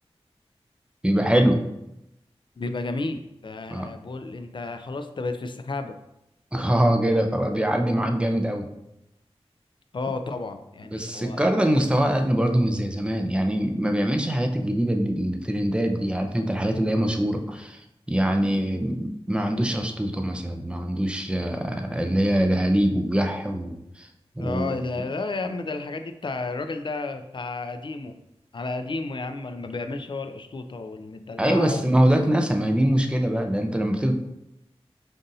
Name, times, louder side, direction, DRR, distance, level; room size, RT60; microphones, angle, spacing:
voice 1, 1.0-1.6 3.7-3.9 6.5-8.7 10.9-17.8 18.1-24.1 24.4-24.7 31.4-34.1, right 1 dB, 10° right, 4 dB, 0.5 m, -23 dB
voice 2, 2.6-6.0 9.9-11.4 24.4-28.2 28.5-32.0, left 3 dB, 50° left, 7 dB, 0.4 m, -32 dB
5.4 x 2.5 x 2.7 m, 0.86 s
cardioid pair, 40°, 11 cm